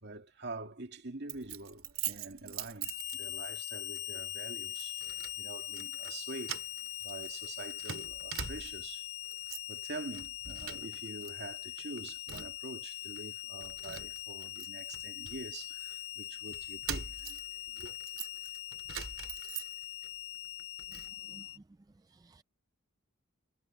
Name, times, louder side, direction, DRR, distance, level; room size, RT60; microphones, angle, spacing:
voice 1, 0.0-5.0 5.4-6.6 7.0-9.1 9.7-17.4 17.7-17.9, right 2 dB, 55° right, 2.2 m, -46 dB
Keys jangling, 1.3-3.6 4.0-4.2 4.8-5.4 5.7-6.2 6.4-8.9 9.2-9.8 10.1-11.3 11.6-12.7 13.2-13.3 13.6-15.9 16.5-20.1 20.4-21.1, right 9 dB, 80° right, 2.7 m, -43 dB
Harmonica, 2.8-21.6, left 16 dB, 55° left, 0.5 m, -42 dB
voice 2, 20.9-21.6 22.0-22.4, right 2 dB, 20° right, 0.3 m, -58 dB
head